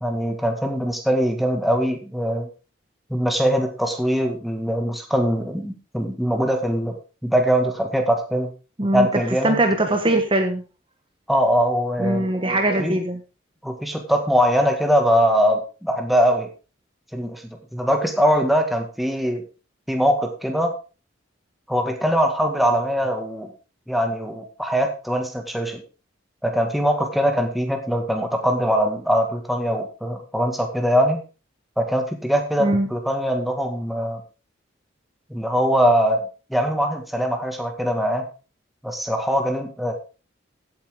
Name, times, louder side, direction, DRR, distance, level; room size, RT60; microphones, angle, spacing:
voice 1, 0.0-2.5 3.1-7.0 7.2-8.5 8.9-9.6 11.3-12.2 12.8-13.0 13.6-16.5 17.1-17.4 17.7-19.4 19.9-20.8 21.7-23.5 23.9-25.8 26.4-31.2 31.8-34.2 35.3-36.2 36.5-38.2 38.8-39.9, equal, ahead, 4 dB, 1.9 m, -22 dB
voice 2, 8.8-10.6 12.0-13.2 32.6-32.9, right 1 dB, 25° right, 5 dB, 1.4 m, -21 dB
16.0 x 8.6 x 3.8 m, 0.33 s
head